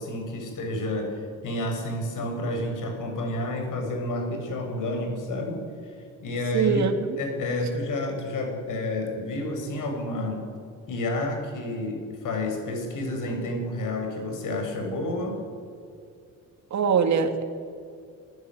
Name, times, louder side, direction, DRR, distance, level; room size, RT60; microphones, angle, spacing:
voice 1, 0.0-5.6 6.2-6.8 7.2-10.4 10.9-15.4, left 1 dB, 75° left, 3 dB, 6.7 m, -30 dB
voice 2, 6.5-7.2 16.7-17.4, right 6 dB, 60° right, 6 dB, 2.5 m, -23 dB
28.0 x 15.0 x 9.6 m, 2.3 s
cardioid pair, 100°, 32 cm